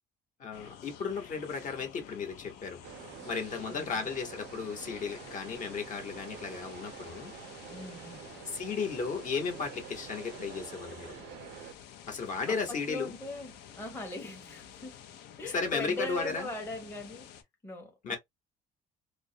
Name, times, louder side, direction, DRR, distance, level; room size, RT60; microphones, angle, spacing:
voice 1, 0.4-2.8 3.3-7.3 8.5-11.1 12.1-13.1 15.4-16.5 18.0-18.2, left 5 dB, 50° left, 0.9 m, -35 dB
sound 1, 0.5-17.4, left 9 dB, 80° left, 0.6 m, -51 dB
sound 2, 2.8-11.7, right 10 dB, 75° right, 0.4 m, -48 dB
voice 2, 3.7-4.1 7.7-8.2 12.5-15.0 15.4-17.3 17.6-18.2, left 1 dB, 15° left, 0.7 m, -40 dB
2.4 x 2.0 x 2.6 m
cardioid pair, 110°, 17 cm